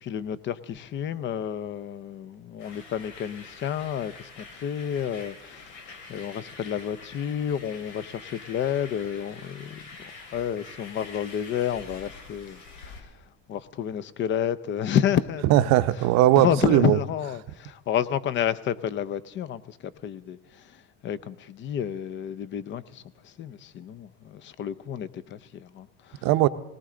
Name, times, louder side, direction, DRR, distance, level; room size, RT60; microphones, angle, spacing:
voice 1, 0.0-13.1 13.5-15.8 16.3-26.3, left 9 dB, 40° left, 0.6 m, -30 dB
sound 1, 2.6-13.0, left 3 dB, 85° left, 2.5 m, -46 dB
voice 2, 15.5-17.0 26.2-26.5, right 15 dB, 60° right, 0.7 m, -19 dB
19.5 x 18.5 x 3.8 m
cardioid pair, 130°, 31 cm